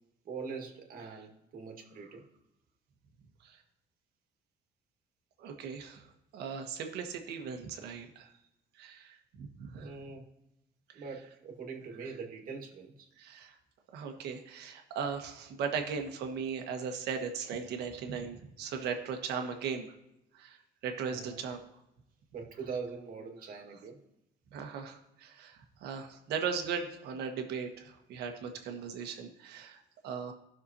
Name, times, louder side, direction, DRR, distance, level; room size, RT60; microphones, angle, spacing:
voice 1, 0.3-2.2 9.7-10.2 10.9-13.1 21.1-21.4 22.3-24.0, right 5 dB, 55° right, 2 dB, 1.8 m, -42 dB
voice 2, 5.4-6.0 6.3-8.3 8.8-9.9 13.2-13.5 13.9-19.9 20.3-20.6 20.8-21.6 24.5-30.3, right 6 dB, 75° right, 5 dB, 1.3 m, -38 dB
16.0 x 6.1 x 2.8 m, 0.88 s
cardioid pair, 110°, 17 cm